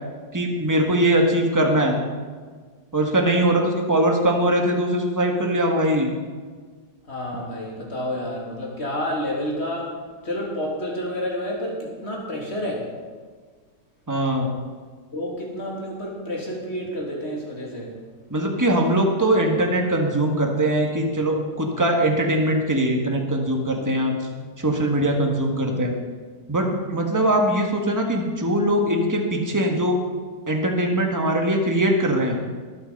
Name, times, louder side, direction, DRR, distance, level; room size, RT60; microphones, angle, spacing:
voice 1, 0.3-2.0 2.9-6.1 14.1-14.5 18.3-24.1 24.6-25.9 26.5-30.0 30.5-32.4, right 1 dB, 10° right, 1 dB, 1.6 m, -21 dB
voice 2, 7.1-9.9 10.2-12.9 15.1-17.9 23.8-24.1 25.0-25.4, equal, 35° left, -2 dB, 3.2 m, -30 dB
21.0 x 7.9 x 5.4 m, 1.5 s
omnidirectional pair, 1.9 m